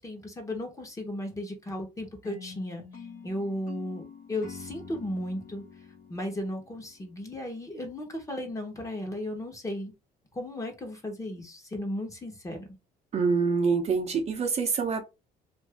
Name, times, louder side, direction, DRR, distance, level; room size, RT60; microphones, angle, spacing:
voice 1, 0.0-2.8 3.2-5.6 6.1-9.9 10.3-12.7, left 1 dB, 20° left, 1.1 m, -35 dB
sound 1, 2.2-7.4, left 5 dB, 55° left, 1.1 m, -46 dB
voice 2, 13.1-15.0, right 5 dB, 40° right, 0.8 m, -25 dB
2.6 x 2.6 x 3.4 m
cardioid pair, 110°, 17 cm